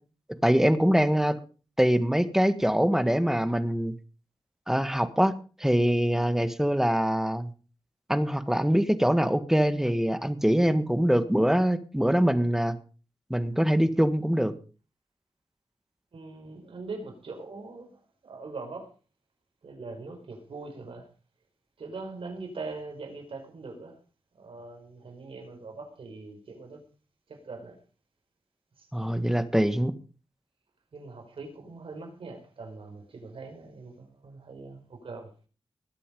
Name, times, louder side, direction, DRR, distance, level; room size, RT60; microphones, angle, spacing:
voice 1, 0.4-1.4 1.8-3.9 4.7-7.5 8.1-12.8 13.3-14.5 28.9-29.9, equal, 5° right, 1.7 m, -24 dB
voice 2, 16.1-18.9 19.6-21.1 21.8-24.0 24.3-26.8 27.3-27.8 28.8-29.5 30.9-35.3, right 3 dB, 80° right, 5.1 m, -42 dB
20.5 x 8.4 x 5.4 m
wide cardioid pair, 75°, 9 cm